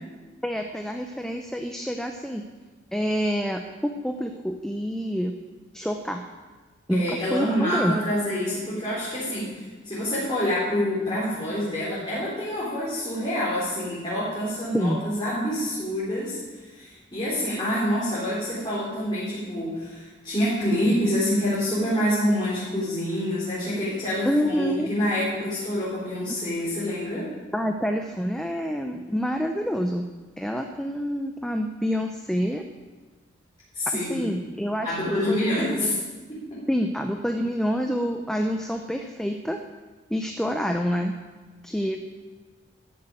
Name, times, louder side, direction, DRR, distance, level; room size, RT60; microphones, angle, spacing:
voice 1, 0.4-2.4 2.9-5.4 5.7-6.2 6.9-8.0 14.7-15.0 24.2-24.9 26.3-26.4 27.5-30.1 30.4-32.6 33.9-35.0 35.3-36.0 36.7-39.6 40.1-41.1 41.6-42.1, equal, 5° left, 4 dB, 0.6 m, -27 dB
voice 2, 6.9-9.5 9.8-27.3 33.7-34.3 34.8-35.9 36.3-36.6, equal, 25° left, -10 dB, 4.2 m, -27 dB
13.5 x 7.7 x 9.0 m, 1.3 s
head